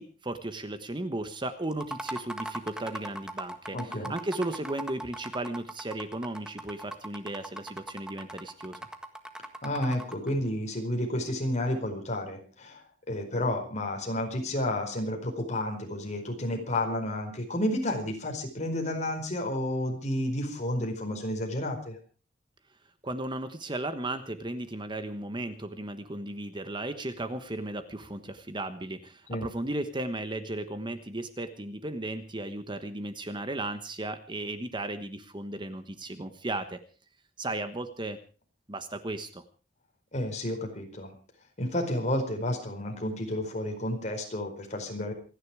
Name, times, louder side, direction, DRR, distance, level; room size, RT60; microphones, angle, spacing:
voice 1, 0.0-8.8 23.0-36.8 37.4-38.2 38.7-39.4, right 2 dB, 25° right, 10 dB, 1.2 m, -35 dB
sound 1, 1.7-10.3, right 1 dB, 5° right, 1.7 m, -40 dB
voice 2, 3.7-4.1 9.6-22.0 29.3-29.5 40.1-41.1 41.6-45.1, left 1 dB, 40° left, 3 dB, 4.7 m, -31 dB
27.0 x 10.5 x 4.9 m, 0.37 s
head